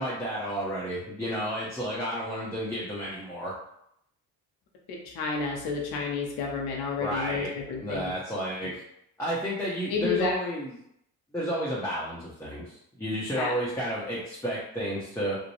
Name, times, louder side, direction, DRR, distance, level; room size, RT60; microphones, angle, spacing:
voice 1, 0.0-3.5 7.0-7.5 7.8-8.8 9.2-10.7 11.3-15.4, equal, 5° left, -7 dB, 0.8 m, -31 dB
voice 2, 4.9-8.1 9.9-10.4 13.4-13.5, left 4 dB, 75° left, 0 dB, 0.7 m, -30 dB
2.5 x 2.1 x 3.1 m, 0.75 s
supercardioid pair, 70°, 37 cm